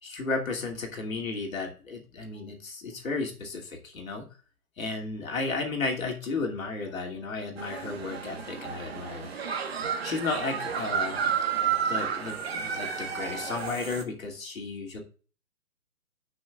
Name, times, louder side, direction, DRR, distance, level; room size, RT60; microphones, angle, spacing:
voice 1, 0.0-4.3 4.8-9.3 10.0-11.2 11.8-15.0, left 3 dB, 65° left, 1 dB, 2.8 m, -33 dB
sound 1, 7.6-14.0, right 7 dB, 45° right, 1.4 m, -31 dB
16.5 x 6.2 x 2.4 m, 0.38 s
hypercardioid pair, 170°, 45 cm